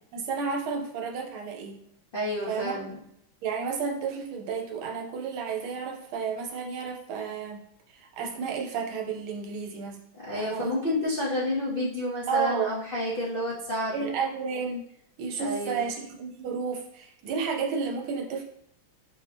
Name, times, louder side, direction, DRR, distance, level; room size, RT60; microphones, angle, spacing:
voice 1, 0.1-1.8 2.5-2.8 3.4-7.6 7.9-10.0 10.3-11.0 12.3-12.7 13.9-14.8 15.2-18.4, right 5 dB, 75° right, 2 dB, 1.5 m, -32 dB
voice 2, 2.1-3.0 10.2-14.1 15.4-15.8, left 1 dB, 70° left, -7 dB, 0.5 m, -30 dB
4.8 x 2.7 x 3.4 m, 0.75 s
omnidirectional pair, 2.4 m